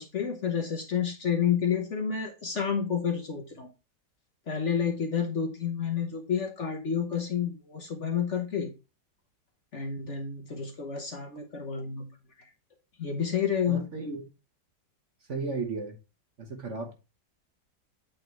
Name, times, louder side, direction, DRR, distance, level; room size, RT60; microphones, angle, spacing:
voice 1, 0.0-3.7 4.5-8.7 9.7-12.1 13.0-13.9, left 7 dB, 50° left, 1.1 m, -30 dB
voice 2, 13.7-14.2 15.3-16.0 16.4-16.9, right 3 dB, 45° right, 1.3 m, -34 dB
8.6 x 3.8 x 4.4 m
omnidirectional pair, 1.9 m